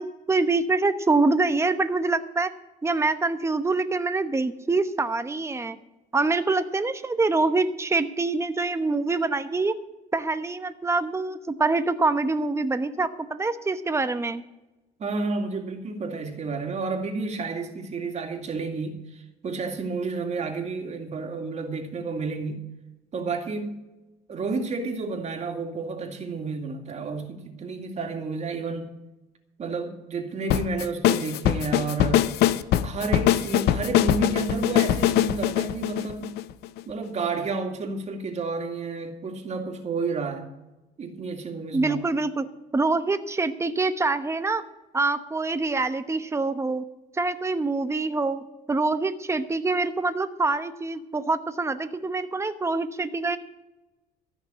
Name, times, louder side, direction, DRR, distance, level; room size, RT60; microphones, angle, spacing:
voice 1, 0.0-2.5 2.8-5.8 6.1-9.7 10.1-14.4 41.7-44.6 44.9-46.8 47.1-53.4, right 3 dB, 15° right, 1.0 m, -25 dB
voice 2, 15.0-22.7 23.1-23.8 24.3-28.9 29.6-32.3 32.8-36.3 36.9-40.5 41.0-42.0, right 4 dB, 40° right, 2.3 m, -31 dB
sound 1, 30.5-36.8, left 12 dB, 80° left, 0.7 m, -22 dB
14.0 x 6.0 x 9.7 m
cardioid pair, 110°, 17 cm